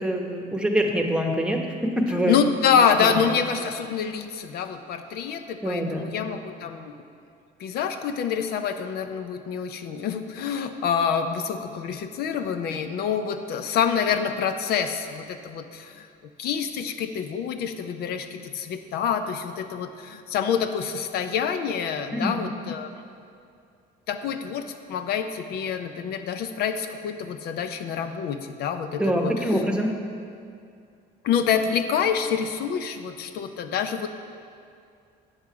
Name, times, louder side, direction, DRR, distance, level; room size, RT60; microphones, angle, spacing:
voice 1, 0.0-2.3 3.0-3.2 5.6-6.1 22.1-22.4 29.0-29.9, equal, 5° right, 2 dB, 1.0 m, -25 dB
voice 2, 2.3-6.9 7.6-16.1 16.4-22.9 24.1-29.7 31.2-34.1, left 7 dB, 70° left, 9 dB, 0.5 m, -27 dB
8.8 x 7.8 x 4.7 m, 2.4 s
cardioid pair, 110°, 17 cm